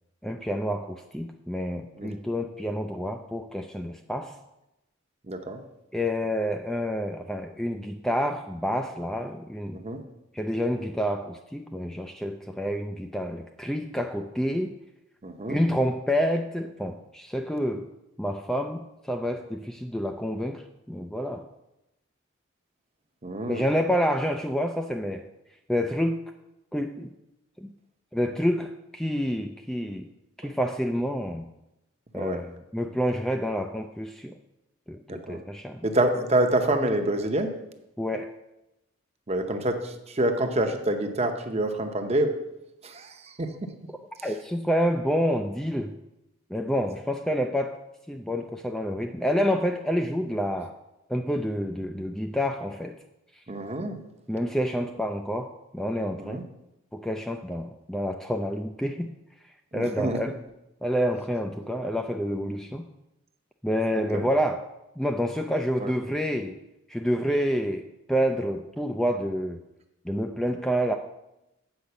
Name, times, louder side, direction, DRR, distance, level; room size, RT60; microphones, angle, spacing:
voice 1, 0.2-4.3 5.9-9.8 10.3-14.7 15.5-17.9 18.2-20.6 20.9-21.5 23.5-25.3 25.7-26.2 26.7-27.1 27.6-27.7 28.1-30.1 30.4-31.5 32.1-34.3 34.9-35.9 38.0-38.3 44.2-46.0 46.5-47.8 48.1-50.7 51.1-53.0 54.3-56.4 56.9-59.1 59.7-60.4 60.8-62.9 63.6-64.6 65.0-66.6 66.9-69.6 70.0-71.0, equal, ahead, 4 dB, 0.3 m, -28 dB
voice 2, 5.3-5.6 9.7-10.0 15.2-15.6 23.2-23.6 32.1-32.4 35.1-35.4 35.8-37.5 39.3-42.3 42.8-43.7 53.5-54.0 56.2-56.4 59.7-60.2 64.0-64.3 65.8-65.9, right 1 dB, 30° right, 6 dB, 0.8 m, -27 dB
8.0 x 5.1 x 6.8 m, 0.91 s
head